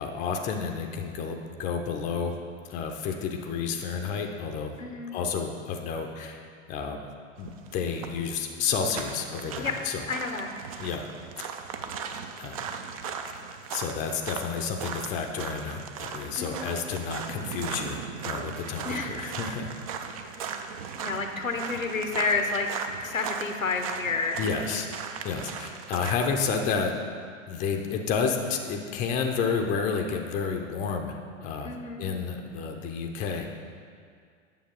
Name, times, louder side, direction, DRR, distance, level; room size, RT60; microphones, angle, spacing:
voice 1, 0.0-2.3 2.7-4.7 5.1-7.0 7.4-10.0 10.8-11.0 11.4-11.6 12.4-12.6 13.7-19.7 24.4-24.9 25.2-26.9 27.5-31.7 32.0-33.5, left 5 dB, 20° left, 3 dB, 0.5 m, -30 dB
voice 2, 4.8-5.1 9.6-9.7 10.1-10.5 16.4-16.7 18.8-19.2 20.3-20.4 20.9-22.7 23.0-24.4 31.6-32.1, left 4 dB, 85° left, 5 dB, 0.9 m, -30 dB
sound 1, 7.4-26.1, right 6 dB, 30° right, 0.4 m, -38 dB
8.8 x 6.9 x 3.8 m, 2.1 s
figure-of-eight pair, 100°, 39 cm